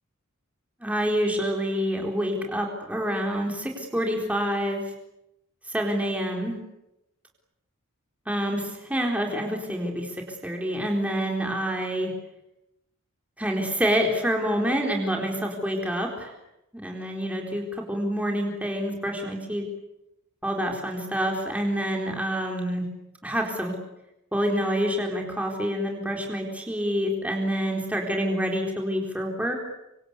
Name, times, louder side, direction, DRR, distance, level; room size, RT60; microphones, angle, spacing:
voice 1, 0.8-4.9 5.7-6.6 8.3-12.1 13.4-16.3 16.7-19.7 20.4-22.8 23.2-23.7 24.3-29.5, equal, 5° right, 1 dB, 4.2 m, -27 dB
26.5 x 25.5 x 8.4 m, 0.88 s
head